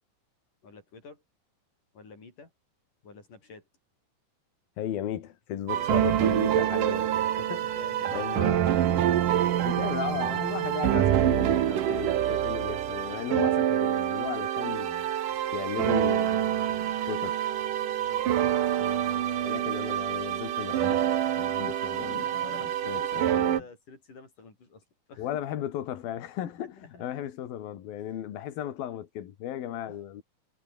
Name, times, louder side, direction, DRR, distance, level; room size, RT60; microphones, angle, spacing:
voice 1, 0.6-1.2 1.9-2.5 3.0-3.6 5.7-6.4 7.4-9.8 11.7-12.0 12.3-12.5 17.9-18.3 19.4-19.9 22.2-25.3 26.4-27.0 28.0-28.1 29.9-30.0, left 4 dB, 60° left, 8.5 m, -48 dB
voice 2, 4.8-7.1 7.4-7.7 8.1-8.8 9.6-15.1 15.5-17.4 18.8-23.6 25.2-30.2, left 11 dB, 80° left, 3.7 m, -36 dB
sound 1, 5.7-23.6, right 11 dB, 65° right, 3.1 m, -26 dB
omnidirectional pair, 4.2 m